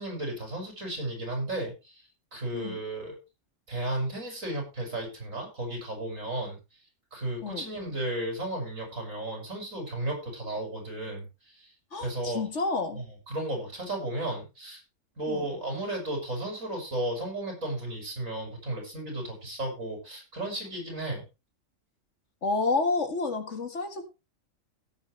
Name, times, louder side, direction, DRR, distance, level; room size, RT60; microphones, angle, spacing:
voice 1, 0.0-2.0 2.3-3.2 3.7-6.6 7.1-11.3 12.0-12.4 13.0-14.8 15.2-21.2, right 1 dB, 75° right, 1 dB, 7.4 m, -34 dB
voice 2, 11.9-13.0 15.3-15.5 22.4-24.0, left 3 dB, 60° left, 6 dB, 2.1 m, -29 dB
17.0 x 8.6 x 3.3 m, 0.28 s
omnidirectional pair, 1.4 m